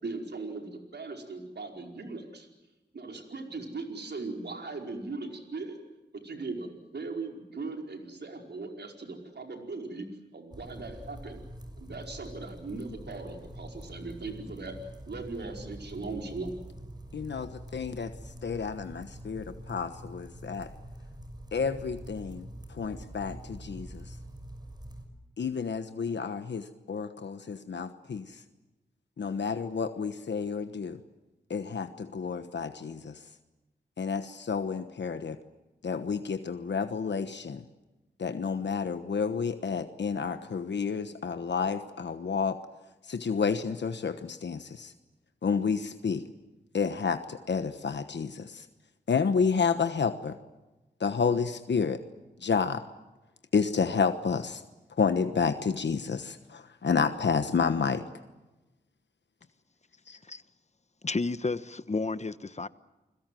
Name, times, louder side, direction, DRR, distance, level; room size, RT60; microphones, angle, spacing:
voice 1, 0.0-2.5 2.9-5.8 6.1-10.1 10.3-11.4 11.8-14.8 15.1-16.6, right 3 dB, 70° right, 4.9 m, -39 dB
sound 1, 10.5-25.0, right 1 dB, 25° right, 6.0 m, -45 dB
voice 2, 17.1-20.7 21.5-24.2 25.4-28.4 29.2-31.0 31.5-33.3 34.0-35.4 35.8-37.6 38.2-42.6 43.0-44.9 45.4-46.2 46.7-48.7 49.1-50.4 51.0-52.0 52.4-52.8 53.5-54.6 55.0-58.0 60.1-60.2, left 5 dB, 80° left, 1.2 m, -30 dB
voice 3, 61.0-62.7, left 3 dB, 40° left, 1.1 m, -31 dB
29.5 x 22.0 x 7.7 m
wide cardioid pair, 70°, 18 cm